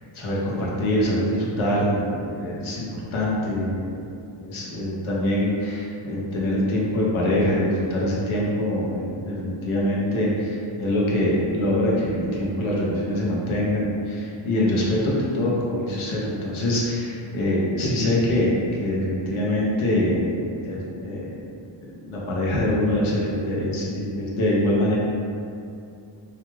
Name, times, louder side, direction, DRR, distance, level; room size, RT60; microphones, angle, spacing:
voice 1, 0.1-3.9 4.4-21.5 21.8-25.0, left 1 dB, 75° left, -5 dB, 0.7 m, -24 dB
2.3 x 2.2 x 3.1 m, 2.5 s
wide cardioid pair, 180°, 48 cm